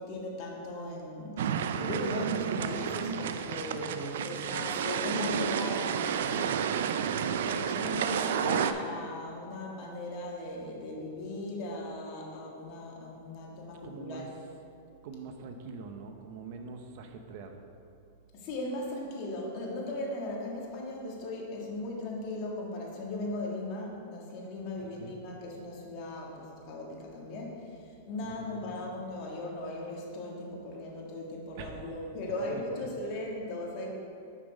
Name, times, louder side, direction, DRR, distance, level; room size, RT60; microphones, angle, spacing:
voice 1, 0.0-6.4 7.4-14.3 18.3-33.9, left 1 dB, 40° left, -2 dB, 1.6 m, -38 dB
sound 1, 1.4-8.7, right 8 dB, 75° right, 0.4 m, -31 dB
voice 2, 2.7-3.1 3.7-4.7 6.2-7.3 13.8-14.4 15.0-17.6 24.8-25.2 28.2-28.7 31.6-31.9 32.2-32.9, right 4 dB, 50° right, 5 dB, 0.8 m, -44 dB
6.2 x 6.1 x 5.1 m, 2.5 s
supercardioid pair, 145°, 0 cm